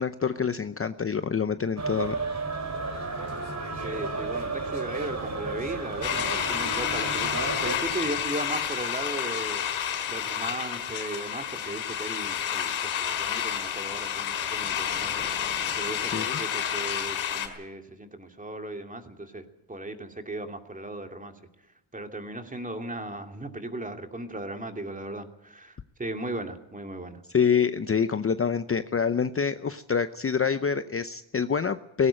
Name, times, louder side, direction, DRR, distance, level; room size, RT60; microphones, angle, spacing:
voice 1, 0.0-2.2 16.1-16.4 27.3-32.1, left 6 dB, 30° left, 11 dB, 0.8 m, -26 dB
sound 1, 1.8-7.8, right 3 dB, 35° right, 4.6 m, -32 dB
voice 2, 3.7-9.6 10.1-15.3 15.7-21.3 21.9-27.2, right 2 dB, 15° right, 5 dB, 2.6 m, -37 dB
sound 2, 6.0-17.5, left 9 dB, 80° left, 4.7 m, -30 dB
18.0 x 16.5 x 8.8 m, 0.83 s
cardioid pair, 95°, 48 cm